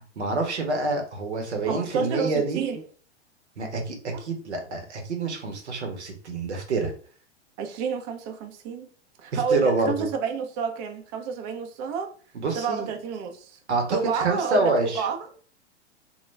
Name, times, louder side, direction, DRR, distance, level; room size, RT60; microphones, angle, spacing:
voice 1, 0.2-2.6 3.6-6.9 9.3-10.1 12.4-12.9 13.7-15.1, right 3 dB, 85° right, 0.8 m, -27 dB
voice 2, 1.7-2.8 4.1-4.2 7.6-8.9 9.2-12.1 12.5-13.6 13.9-15.2, right 6 dB, 35° right, 0.4 m, -29 dB
2.2 x 2.1 x 3.1 m
hypercardioid pair, 100°, 34 cm